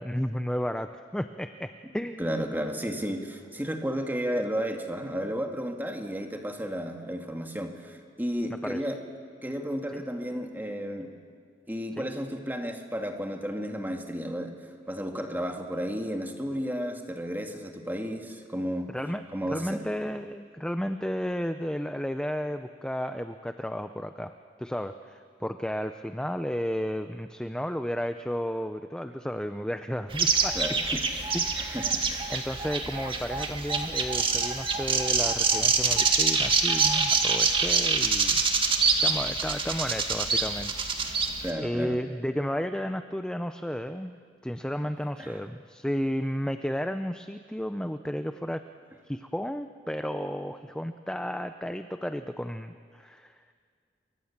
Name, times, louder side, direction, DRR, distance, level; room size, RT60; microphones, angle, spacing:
voice 1, 0.0-2.3 8.5-8.9 9.9-10.0 12.0-12.1 18.9-19.2 19.5-24.3 24.6-30.6 31.3-31.8 32.3-38.4 39.0-41.2 41.6-48.6 49.0-53.5, equal, 5° left, 8 dB, 0.6 m, -33 dB
voice 2, 2.2-9.0 9.4-11.1 11.7-14.5 14.9-18.9 19.3-19.8 30.5-32.3 41.4-42.0 45.2-45.4, equal, 10° right, 3 dB, 2.0 m, -33 dB
sound 1, 30.1-41.5, right 4 dB, 30° right, 1.9 m, -26 dB
28.5 x 23.5 x 7.3 m, 2.1 s
head